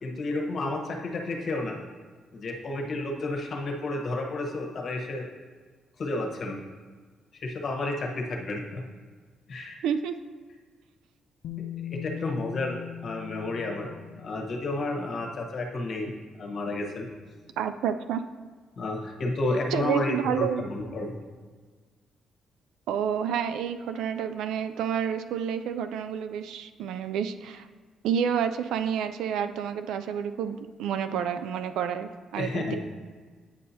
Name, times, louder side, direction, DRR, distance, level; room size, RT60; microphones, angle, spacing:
voice 1, 0.0-1.8 2.3-5.3 6.0-6.6 7.4-8.8 9.5-9.8 11.8-13.9 14.2-16.1 16.4-17.1 18.8-21.1 32.4-32.8, left 2 dB, 55° left, 1 dB, 1.1 m, -31 dB
voice 2, 9.8-10.2 17.6-18.2 19.7-20.7 22.9-27.7 28.0-32.8, right 8 dB, 85° right, 10 dB, 0.3 m, -29 dB
Bass guitar, 11.4-15.4 16.5-16.6, left 11 dB, 80° left, 0.3 m, -40 dB
8.8 x 5.5 x 2.8 m, 1.5 s
cardioid pair, 90°, 0 cm